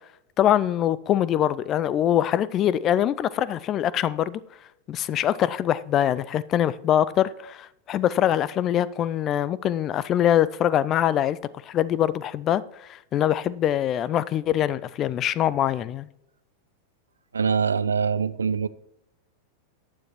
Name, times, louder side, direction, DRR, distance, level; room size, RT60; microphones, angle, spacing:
voice 1, 0.4-4.4 4.9-11.4 11.7-16.1, left 11 dB, 30° left, 0.4 m, -23 dB
voice 2, 17.3-18.7, right 6 dB, 75° right, 0.4 m, -23 dB
15.0 x 9.4 x 3.0 m
figure-of-eight pair, 90°, 0 cm